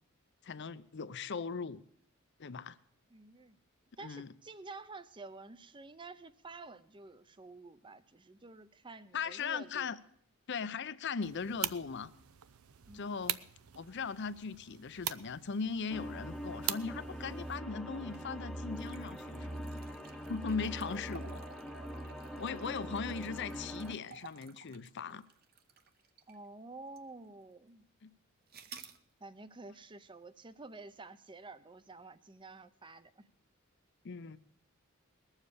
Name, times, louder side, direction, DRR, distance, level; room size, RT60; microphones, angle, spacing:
voice 1, 0.4-1.8 2.4-2.8 4.0-4.3 9.1-10.0 10.5-12.1 12.9-13.4 13.8-19.8 20.3-21.5 22.4-25.2 28.0-28.1 34.0-34.4, left 5 dB, 55° left, 0.6 m, -39 dB
voice 2, 3.1-3.6 4.0-10.0 12.9-13.3 26.3-27.8 29.2-33.3, right 3 dB, 25° right, 0.6 m, -50 dB
sound 1, 11.2-17.6, right 12 dB, 85° right, 0.6 m, -42 dB
sound 2, 15.9-23.9, equal, ahead, 0.9 m, -43 dB
sound 3, 18.0-26.5 27.0-27.1 28.5-29.0, right 5 dB, 45° right, 0.8 m, -55 dB
20.0 x 7.3 x 6.7 m
head